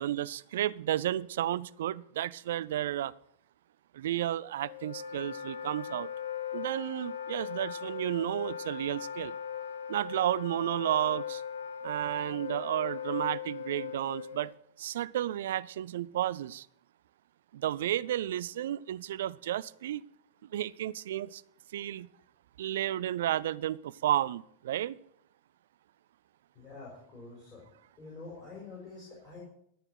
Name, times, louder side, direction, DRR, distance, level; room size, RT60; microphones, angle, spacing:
voice 1, 0.0-3.1 3.9-6.1 6.5-9.4 9.9-11.4 11.8-14.5 14.8-16.7 17.5-20.0 20.5-21.4 21.7-22.1 22.6-25.0, right 12 dB, 60° right, 0.3 m, -32 dB
Wind instrument woodwind instrument, 4.6-14.5, left 8 dB, 65° left, 0.6 m, -39 dB
voice 2, 26.5-27.6 28.0-29.4, left 3 dB, 25° left, 4.5 m, -47 dB
13.5 x 4.5 x 7.8 m
figure-of-eight pair, 90°, 0 cm